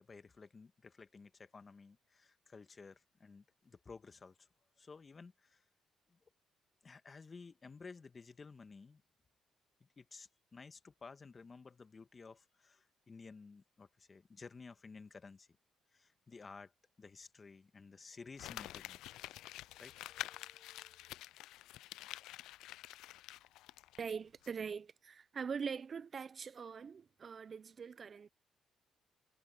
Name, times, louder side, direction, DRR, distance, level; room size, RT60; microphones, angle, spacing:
voice 1, 0.0-4.5 4.8-5.6 6.1-6.2 6.8-9.0 9.8-15.5 15.9-16.7 17.0-19.0 19.8-19.9, left 4 dB, 35° left, 1.5 m, -54 dB
sound 1, 17.9-21.6, left 1 dB, 10° left, 6.8 m, -74 dB
Crumpling crinkling, 18.4-24.1 24.4-24.5, left 15 dB, 85° left, 0.4 m, -48 dB
voice 2, 24.0-28.3, right 6 dB, 45° right, 0.6 m, -43 dB
supercardioid pair, 70°, 0 cm